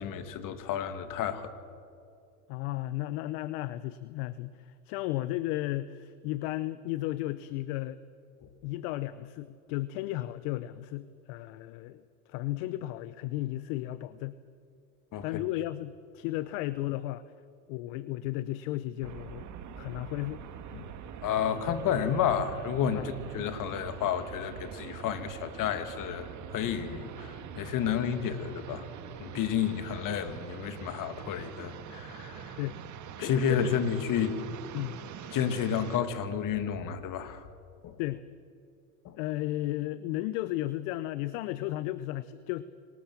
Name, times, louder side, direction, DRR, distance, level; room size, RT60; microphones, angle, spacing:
voice 1, 0.0-1.5 15.1-15.3 20.7-20.9 21.2-26.3 26.5-28.9 29.2-32.6 33.2-34.4 35.3-37.4 37.8-38.0 39.0-39.2, left 8 dB, 45° left, 9 dB, 2.3 m, -31 dB
voice 2, 2.5-8.0 8.6-12.0 12.3-14.4 15.2-17.2 17.7-19.5 19.8-20.4 22.9-23.1 32.6-32.8 33.2-33.7 34.7-35.0 38.0-38.2 39.1-42.6, left 16 dB, 65° left, 16 dB, 0.9 m, -34 dB
sound 1, 19.0-36.0, right 8 dB, 40° right, 1.9 m, -44 dB
25.5 x 19.0 x 7.4 m, 2.4 s
hypercardioid pair, 95°, 43 cm